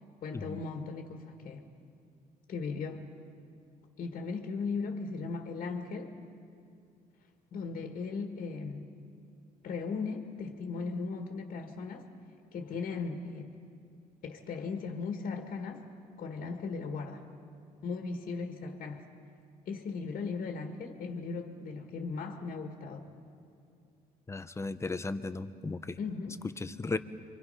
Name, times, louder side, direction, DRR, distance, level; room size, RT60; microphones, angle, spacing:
voice 1, 0.2-1.7 2.5-3.0 4.0-6.1 7.5-8.9 9.6-12.1 12.5-13.5 14.2-15.8 16.2-17.2 17.8-19.0 19.6-23.1 26.0-26.4, left 4 dB, 60° left, 4 dB, 1.8 m, -37 dB
voice 2, 24.3-26.0 26.6-27.0, left 3 dB, 15° left, 11 dB, 0.8 m, -35 dB
29.0 x 24.5 x 5.6 m, 2.4 s
cardioid pair, 115°, 16 cm